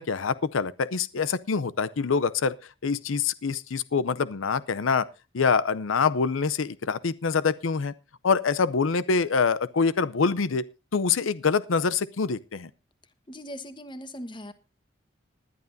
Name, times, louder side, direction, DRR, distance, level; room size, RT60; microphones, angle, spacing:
voice 1, 0.0-2.5 2.8-5.1 5.3-7.9 8.2-10.6 10.9-12.7, left 5 dB, 90° left, 0.6 m, -25 dB
voice 2, 13.3-14.5, equal, 25° left, 1.2 m, -39 dB
20.0 x 11.0 x 2.6 m
head